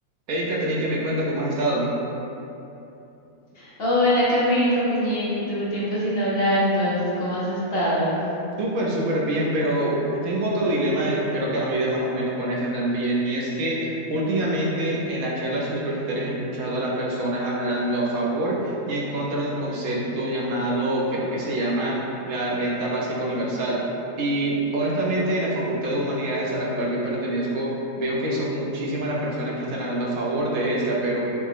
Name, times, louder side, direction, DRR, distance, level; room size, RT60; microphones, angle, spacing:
voice 1, 0.3-1.9 8.6-22.0 22.3-23.9 24.2-27.7 28.0-31.2, right 1 dB, 80° right, -4 dB, 1.1 m, -25 dB
voice 2, 3.5-8.2, equal, 50° left, -8 dB, 0.8 m, -23 dB
4.8 x 2.2 x 3.4 m, 2.9 s
omnidirectional pair, 1.6 m